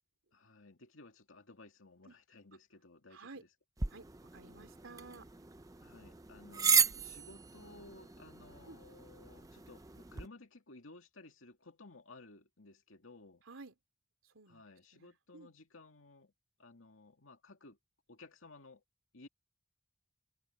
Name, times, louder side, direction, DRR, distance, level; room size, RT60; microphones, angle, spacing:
voice 1, 0.3-3.5 5.8-13.4 14.5-16.3 16.6-17.8 18.1-18.8 19.1-19.3, left 2 dB, 85° left, 2.3 m, -57 dB
voice 2, 3.1-3.4 3.9-5.3 8.6-8.8 13.4-13.7 14.3-14.6 14.9-15.5, right 3 dB, 85° right, 2.9 m, -53 dB
sound 1, 3.8-10.3, right 6 dB, 15° right, 0.6 m, -35 dB
head